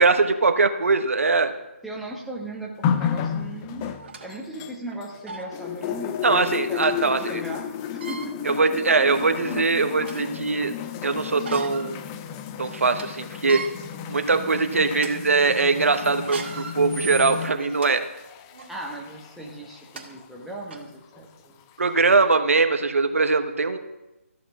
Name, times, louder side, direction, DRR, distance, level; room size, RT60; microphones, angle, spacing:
voice 1, 0.0-1.5 6.2-7.4 8.4-10.7 11.0-12.0 12.6-13.6 14.1-18.0 21.8-23.8, right 4 dB, 70° right, 8 dB, 1.0 m, -21 dB
voice 2, 1.8-8.4 18.7-21.6, right 1 dB, ahead, -3 dB, 1.2 m, -38 dB
sound 1, 2.8-5.2 5.5-20.2 21.1-21.2, left 9 dB, 15° left, 0.4 m, -33 dB
sound 2, 3.1-3.2 3.8-4.3 4.9-5.0 5.3-5.5 6.8-6.9 7.9-8.3 9.0-9.1 9.6-10.3 11.3-11.9 12.3-12.4 12.8-13.0 13.4-13.7 14.3-14.5 14.9-15.1 16.1-17.9 18.5-18.7 19.6-19.7 20.0-20.1 20.7-20.8, right 4 dB, 50° right, 1.9 m, -37 dB
13.5 x 6.6 x 6.0 m, 0.99 s
figure-of-eight pair, 150°, 8 cm